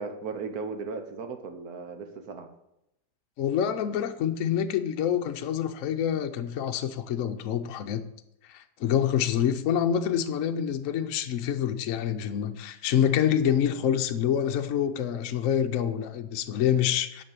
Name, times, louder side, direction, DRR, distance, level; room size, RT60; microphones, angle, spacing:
voice 1, 0.0-2.5, right 4 dB, 65° right, 7 dB, 1.6 m, -36 dB
voice 2, 3.4-8.0 8.5-17.2, left 9 dB, 65° left, 7 dB, 0.9 m, -26 dB
9.6 x 5.3 x 7.3 m, 0.84 s
omnidirectional pair, 1.8 m